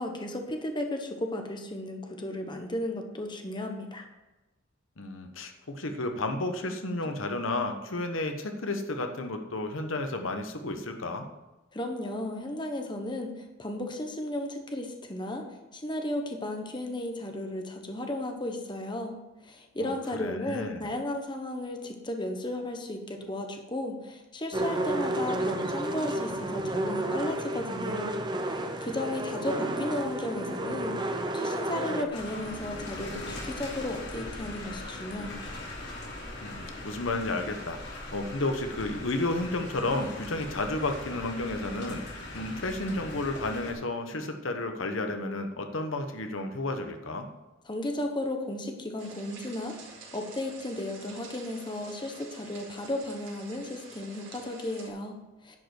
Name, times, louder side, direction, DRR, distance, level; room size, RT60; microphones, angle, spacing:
voice 1, 0.0-4.1 11.7-13.3 13.6-15.4 15.7-19.2 19.4-35.6 47.7-55.6, left 1 dB, 25° left, 4 dB, 1.2 m, -34 dB
voice 2, 5.0-11.3 19.8-19.9 20.2-20.9 36.4-47.3, left 2 dB, 90° left, 6 dB, 1.1 m, -32 dB
sound 1, 24.5-32.0, right 1 dB, 20° right, 0.8 m, -31 dB
sound 2, 32.1-43.7, left 2 dB, 60° left, 3.0 m, -40 dB
sound 3, 49.0-54.9, right 3 dB, 75° right, 3.9 m, -48 dB
11.0 x 5.3 x 7.8 m, 1.1 s
head